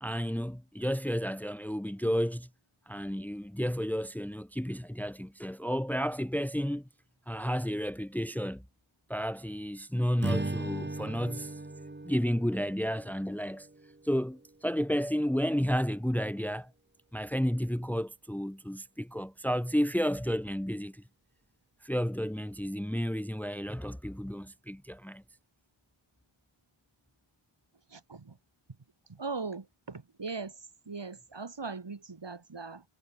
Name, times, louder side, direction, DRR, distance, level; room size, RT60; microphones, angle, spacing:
voice 1, 0.0-2.5 2.9-6.9 7.3-8.6 9.1-11.6 12.0-13.7 14.0-16.7 17.1-21.0 21.8-25.2, equal, 5° left, 1.5 m, -32 dB
Strum, 10.2-14.6, right 2 dB, 20° right, 2.4 m, -38 dB
voice 2, 27.9-28.4 29.1-30.6 30.9-32.8, right 4 dB, 55° right, 6.2 m, -39 dB
wide cardioid pair, 80°, 50 cm